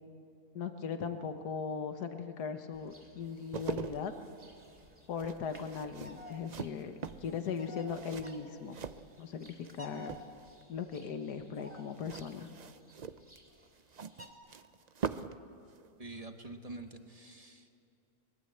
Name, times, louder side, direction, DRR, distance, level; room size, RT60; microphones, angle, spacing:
voice 1, 0.6-4.1 5.1-8.8 9.2-10.1 10.7-12.5, left 6 dB, 85° left, 7 dB, 1.7 m, -38 dB
Bird vocalization bird call bird song, 2.7-14.3, equal, 10° right, 3.1 m, -55 dB
sound 1, 3.2-9.7 10.0-10.6 11.9-15.4 15.7-15.9, right 6 dB, 75° right, 0.4 m, -43 dB
voice 2, 16.0-17.7, right 2 dB, 25° right, 5 dB, 1.4 m, -46 dB
23.5 x 21.0 x 7.9 m, 2.6 s
omnidirectional pair, 1.7 m